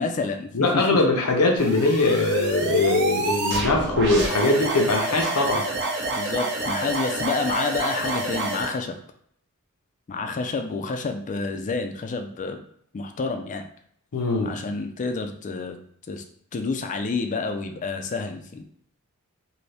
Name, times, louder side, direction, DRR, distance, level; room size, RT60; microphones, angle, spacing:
voice 1, 0.0-0.8 6.1-9.0 10.1-12.6 12.9-13.7 14.4-15.8 16.1-16.2 16.5-18.7, left 4 dB, 35° left, 6 dB, 0.4 m, -29 dB
voice 2, 0.5-5.6 14.1-14.5, left 2 dB, 75° left, 1 dB, 0.6 m, -21 dB
sound 1, 1.6-8.7, right 2 dB, 50° right, 0.7 m, -28 dB
2.7 x 2.7 x 3.3 m, 0.66 s
head